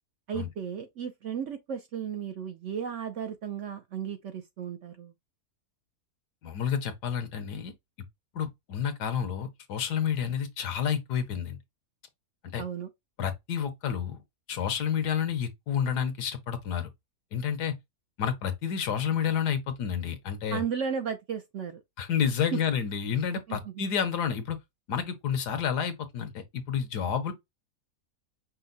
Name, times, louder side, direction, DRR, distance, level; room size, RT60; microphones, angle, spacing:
voice 1, 0.3-5.1 12.6-12.9 20.5-21.8 22.5-22.6 23.5-23.8, right 7 dB, 65° right, 0.8 m, -34 dB
voice 2, 6.4-7.7 8.3-11.6 12.5-12.6 13.2-14.2 14.5-16.9 17.3-17.7 18.2-20.6 22.0-24.6 24.9-27.3, left 8 dB, 80° left, 1.5 m, -30 dB
5.5 x 2.0 x 3.9 m
omnidirectional pair, 1.7 m